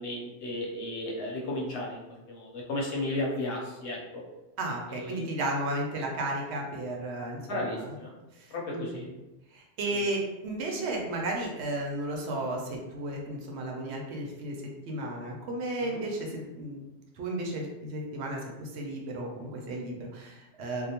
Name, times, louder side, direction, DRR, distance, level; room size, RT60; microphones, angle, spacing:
voice 1, 0.0-4.2 4.9-5.3 7.5-8.1 8.5-9.1 9.9-10.1 15.8-16.0, left 1 dB, 80° left, -3 dB, 1.0 m, -34 dB
voice 2, 4.6-7.9 8.3-9.0 9.5-16.8 17.1-20.9, right 1 dB, 80° right, 0 dB, 0.9 m, -34 dB
2.7 x 2.0 x 2.8 m, 1.0 s
omnidirectional pair, 1.1 m